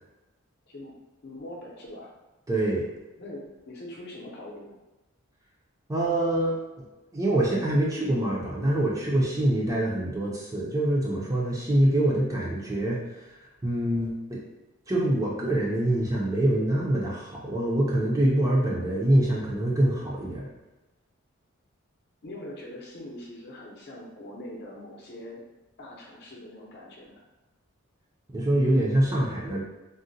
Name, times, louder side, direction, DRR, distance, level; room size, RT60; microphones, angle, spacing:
voice 1, 1.2-2.1 3.2-4.7 22.2-25.4 25.8-27.2, left 1 dB, 50° left, -2 dB, 0.6 m, -42 dB
voice 2, 2.5-2.9 5.9-6.8 7.1-13.3 13.6-14.4 14.9-20.5 28.3-29.6, right 1 dB, 15° right, -5 dB, 0.4 m, -25 dB
3.7 x 2.1 x 2.6 m, 1.0 s
head